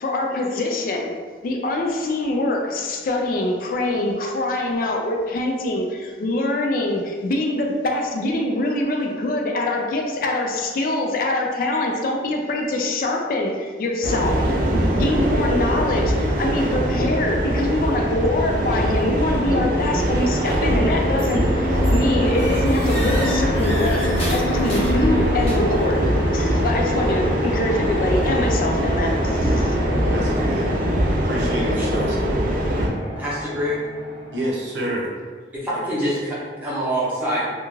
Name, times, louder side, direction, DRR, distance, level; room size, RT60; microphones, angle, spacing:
voice 1, 0.0-1.1 1.4-14.4 14.9-29.8, left 2 dB, 50° left, 1 dB, 0.3 m, -24 dB
sound 1, 14.0-32.9, equal, 50° right, 0.4 m, -22 dB
Fixed-wing aircraft airplane, 19.3-34.5, left 1 dB, 85° left, 0.7 m, -29 dB
sound 2, 21.2-21.5 21.8-25.9, equal, 35° left, 0.7 m, -33 dB
voice 2, 30.1-30.7 31.2-32.3 34.3-35.1, equal, 80° right, -3 dB, 0.7 m, -28 dB
voice 3, 33.2-33.8 35.6-37.5, equal, 10° right, -9 dB, 0.7 m, -25 dB
2.4 x 2.3 x 3.0 m, 1.5 s
head